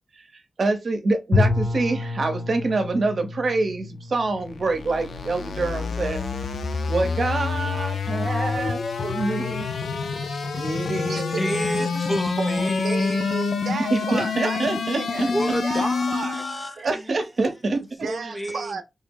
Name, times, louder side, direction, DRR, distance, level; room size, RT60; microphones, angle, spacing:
voice 1, 0.6-6.2 6.9-9.7 10.5-11.5 13.9-15.3 16.8-17.9, right 3 dB, 50° right, 0.8 m, -26 dB
Bowed string instrument, 1.3-6.1, left 3 dB, 40° left, 1.3 m, -28 dB
sound 1, 4.4-16.6, left 4 dB, 85° left, 0.5 m, -27 dB
voice 2, 10.8-11.5 12.4-15.3 15.6-16.4 16.8-16.9 18.0-18.8, right 4 dB, 80° right, 0.6 m, -33 dB
voice 3, 11.4-13.2 15.3-17.1 18.1-18.8, equal, 10° left, 0.5 m, -30 dB
3.3 x 2.0 x 3.6 m
wide cardioid pair, 140°, 0 cm